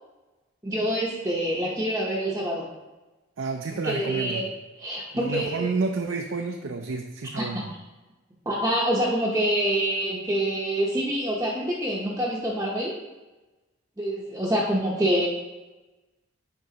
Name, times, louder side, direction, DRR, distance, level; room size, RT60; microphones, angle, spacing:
voice 1, 0.6-2.7 3.8-4.5 4.8-5.7 7.3-7.5 8.5-13.0 14.0-15.3, right 1 dB, 15° right, -6 dB, 0.7 m, -26 dB
voice 2, 3.4-4.4 5.1-7.7, right 4 dB, 70° right, 3 dB, 0.5 m, -30 dB
8.0 x 5.1 x 2.8 m, 1.1 s
head